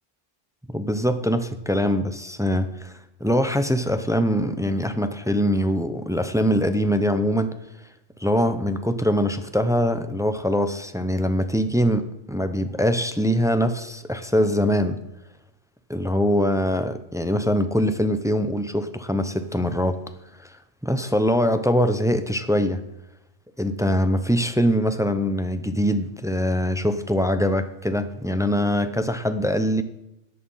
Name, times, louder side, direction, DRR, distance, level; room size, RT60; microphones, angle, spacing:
voice 1, 0.7-7.6 8.2-15.0 15.9-20.0 20.4-22.8 23.6-29.8, equal, 5° right, 9 dB, 0.6 m, -23 dB
13.5 x 8.5 x 5.6 m, 0.84 s
omnidirectional pair, 1.2 m